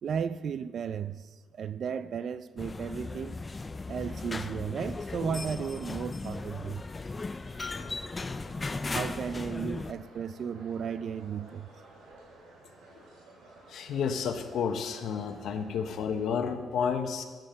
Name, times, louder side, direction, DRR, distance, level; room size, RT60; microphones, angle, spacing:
voice 1, 0.0-1.2 1.5-3.3 3.9-6.8 8.9-11.7, right 7 dB, 60° right, 0.4 m, -34 dB
sound 1, 2.6-9.9, left 3 dB, 25° left, 0.4 m, -37 dB
sound 2, 7.4-16.3, right 2 dB, 80° right, 3.4 m, -54 dB
voice 2, 13.7-17.2, left 6 dB, 70° left, 0.9 m, -31 dB
9.0 x 7.6 x 6.4 m
cardioid pair, 90°, 0 cm